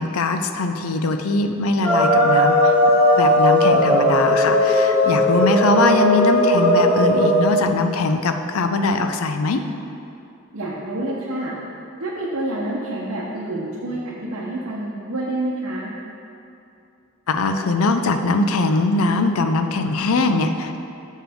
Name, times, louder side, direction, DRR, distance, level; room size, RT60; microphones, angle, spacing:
voice 1, 0.0-2.7 3.2-9.6 17.3-20.8, left 3 dB, 90° left, 7 dB, 0.5 m, -21 dB
sound 1, 1.8-7.5, left 1 dB, 10° left, 1.7 m, -17 dB
voice 2, 5.0-5.4 10.5-11.5 12.0-15.9, right 1 dB, 80° right, -7 dB, 0.8 m, -28 dB
7.7 x 6.4 x 3.5 m, 2.7 s
head